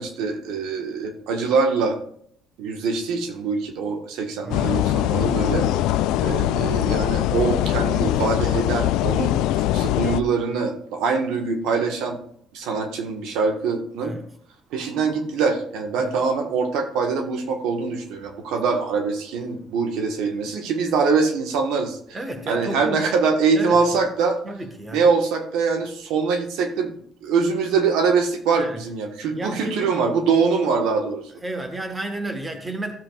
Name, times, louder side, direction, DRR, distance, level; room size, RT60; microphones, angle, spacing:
voice 1, 0.0-2.0 2.6-5.7 6.2-12.2 12.5-14.2 14.7-22.0 22.5-24.4 24.9-26.9 27.2-31.2, right 5 dB, 80° right, 5 dB, 1.4 m, -23 dB
voice 2, 4.4-4.8 14.0-14.3 16.0-16.1 22.1-23.0 23.5-24.0 24.4-25.0 28.6-28.8 29.3-29.9 31.4-32.9, right 1 dB, 15° right, 5 dB, 1.4 m, -32 dB
sound 1, 4.5-10.2, left 13 dB, 90° left, 0.3 m, -22 dB
15.0 x 7.4 x 2.4 m, 0.64 s
cardioid pair, 140°, 0 cm